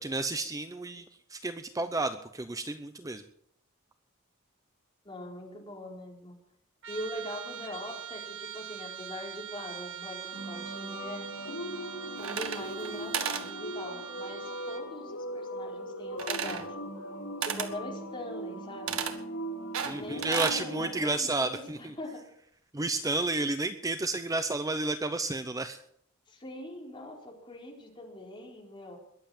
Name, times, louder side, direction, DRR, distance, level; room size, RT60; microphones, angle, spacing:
voice 1, 0.0-3.2 19.8-21.9 22.7-25.8, right 2 dB, 15° right, 10 dB, 0.7 m, -31 dB
voice 2, 5.0-6.4 6.9-11.3 12.2-16.7 17.4-19.0 19.9-22.3 26.3-29.0, left 1 dB, 25° left, 0 dB, 4.3 m, -42 dB
Trumpet, 6.8-14.9, right 9 dB, 65° right, 2.1 m, -43 dB
sound 1, 10.3-21.0, equal, 80° left, 5.0 m, -39 dB
sound 2, 12.2-12.9 13.1-13.5 16.2-16.7 17.4-17.7 18.9-19.2 19.7-20.6, right 7 dB, 80° right, 1.7 m, -33 dB
22.0 x 8.0 x 7.2 m, 0.68 s
head